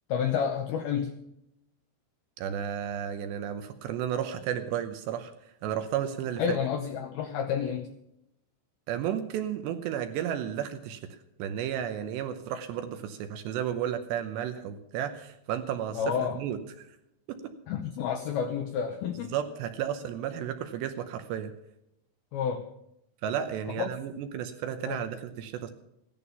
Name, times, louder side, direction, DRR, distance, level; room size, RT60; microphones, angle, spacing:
voice 1, 0.1-1.1 6.4-7.9 15.9-16.4 17.7-19.4 22.3-22.6 23.8-23.9 24.9-25.0, left 7 dB, 85° left, 6 dB, 2.2 m, -30 dB
voice 2, 2.4-5.3 5.6-6.6 8.9-16.0 16.3-16.9 17.3-17.5 19.3-21.5 23.2-25.7, right 9 dB, 75° right, 8 dB, 2.7 m, -33 dB
16.0 x 11.0 x 5.6 m, 0.82 s
omnidirectional pair, 5.6 m